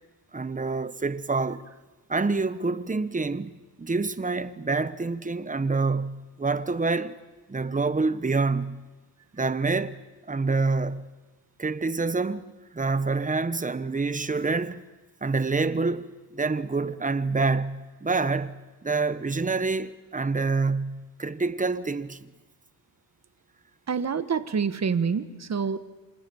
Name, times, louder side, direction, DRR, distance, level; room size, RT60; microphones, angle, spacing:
voice 1, 0.3-1.7 2.1-7.2 7.5-8.8 9.3-10.0 10.3-11.1 11.6-12.5 12.7-14.8 15.2-22.3, right 3 dB, 20° right, 1.2 m, -27 dB
voice 2, 23.9-25.8, right 6 dB, 40° right, 1.5 m, -27 dB
28.0 x 26.0 x 7.2 m
cardioid pair, 105°, 41 cm